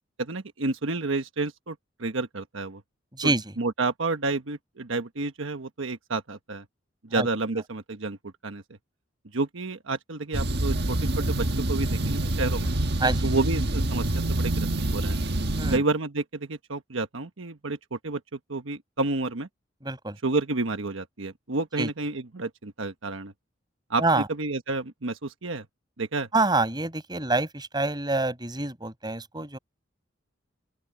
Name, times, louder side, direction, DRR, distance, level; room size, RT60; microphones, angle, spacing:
voice 1, 0.2-2.8 3.2-3.3 3.6-6.6 7.0-8.2 8.4-8.6 9.3-12.7 13.2-15.2 15.7-18.2 18.5-19.5 20.2-23.3 23.9-25.7 26.0-26.3, right 3 dB, 85° right, 1.2 m, -30 dB
voice 2, 3.1-3.5 7.1-7.3 13.0-13.3 15.5-15.8 19.8-20.2 21.8-21.9 24.0-24.3 26.3-29.6, right 2 dB, 20° right, 6.3 m, -26 dB
sound 1, 10.3-15.8, right 1 dB, 55° right, 1.5 m, -26 dB
open air
head